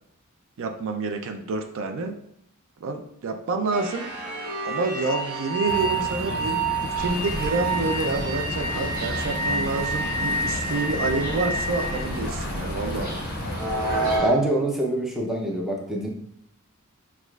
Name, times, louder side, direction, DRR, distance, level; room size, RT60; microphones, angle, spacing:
voice 1, 0.6-2.2 2.8-4.1 4.6-6.7 7.0-13.2, right 3 dB, 65° right, 5 dB, 0.4 m, -28 dB
sound 1, 3.7-12.1, right 3 dB, 85° right, 1.2 m, -29 dB
sound 2, 5.7-14.2, left 1 dB, 45° left, 0.6 m, -33 dB
sound 3, 7.0-14.3, right 1 dB, 45° right, 1.2 m, -32 dB
voice 2, 14.2-16.1, right 1 dB, ahead, -2 dB, 0.6 m, -25 dB
6.2 x 2.4 x 2.3 m, 0.73 s
head